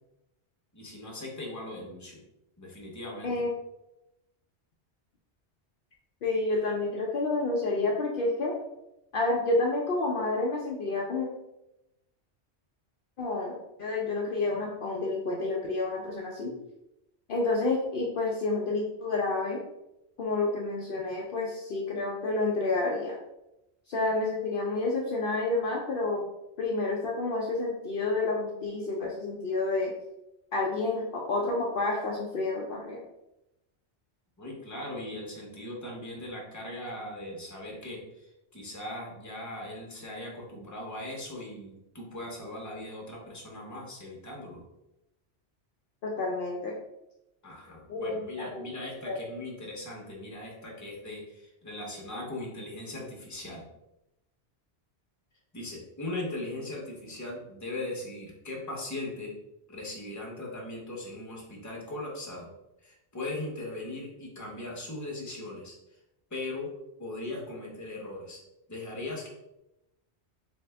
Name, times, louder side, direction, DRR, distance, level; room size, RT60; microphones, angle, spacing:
voice 1, 0.7-2.2 2.6-3.3 34.4-44.6 47.4-53.6 55.5-59.3 59.7-62.5 62.8-65.7 66.3-66.7 67.0-68.4 68.7-69.3, left 1 dB, 20° left, -2 dB, 0.8 m, -39 dB
voice 2, 6.2-8.5 9.1-11.3 13.2-16.5 17.3-19.6 20.2-23.2 23.9-26.2 26.6-29.9 30.5-33.0 46.0-46.8 47.9-48.6 49.1-49.2, left 2 dB, 60° left, -2 dB, 0.7 m, -29 dB
3.3 x 2.8 x 3.3 m, 0.91 s
omnidirectional pair, 1.1 m